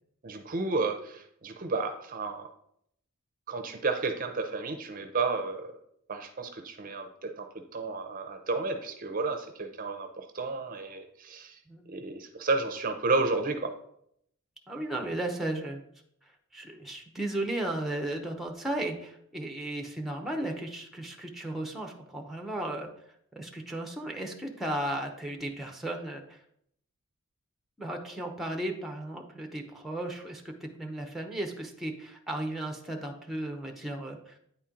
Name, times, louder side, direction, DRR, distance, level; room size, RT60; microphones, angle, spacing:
voice 1, 0.2-2.5 3.5-5.7 6.1-11.6 11.9-13.7, right 3 dB, 40° right, 7 dB, 0.6 m, -32 dB
voice 2, 14.7-15.8 16.5-22.9 23.3-26.4 27.8-34.3, right 1 dB, ahead, 2 dB, 0.8 m, -35 dB
8.9 x 4.3 x 3.7 m, 0.71 s
head